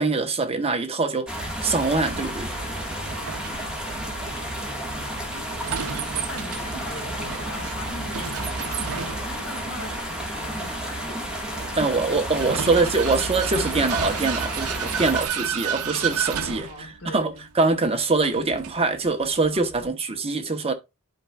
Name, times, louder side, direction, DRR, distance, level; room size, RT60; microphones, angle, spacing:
voice 1, 0.0-2.5 11.8-20.7, right 3 dB, 25° right, 1.0 m, -24 dB
sound 1, 1.3-15.3, equal, 5° right, 1.7 m, -32 dB
Vehicle, 1.8-19.9, right 7 dB, 70° right, 0.6 m, -33 dB
voice 2, 5.3-11.5 12.4-14.6 16.5-17.4 19.5-19.9, left 1 dB, 70° left, 1.9 m, -42 dB
11.0 x 4.5 x 2.4 m
head